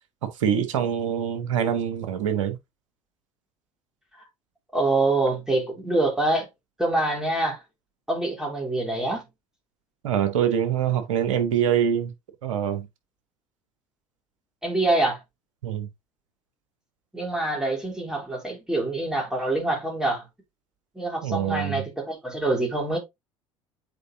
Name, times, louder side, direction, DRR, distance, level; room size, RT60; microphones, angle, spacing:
voice 1, 0.2-2.6 10.0-12.1 12.4-12.9 15.6-15.9 21.2-21.9, right 9 dB, 70° right, 1.2 m, -24 dB
voice 2, 4.7-6.5 6.8-7.6 8.1-9.2 14.6-15.2 17.1-20.3 21.0-23.0, right 2 dB, 5° right, 3.6 m, -25 dB
8.2 x 4.7 x 2.7 m
figure-of-eight pair, 65°, 17 cm